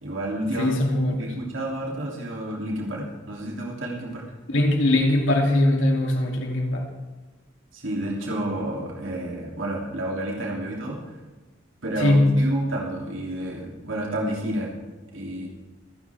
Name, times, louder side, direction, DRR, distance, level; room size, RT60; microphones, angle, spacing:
voice 1, 0.0-0.7 1.1-4.2 7.7-11.1 11.8-14.7 15.1-15.5, right 1 dB, 85° right, -2 dB, 3.0 m, -30 dB
voice 2, 0.6-1.3 4.5-6.9 12.0-12.4, left 1 dB, 85° left, 1 dB, 2.9 m, -21 dB
26.5 x 10.5 x 3.6 m, 1.2 s
head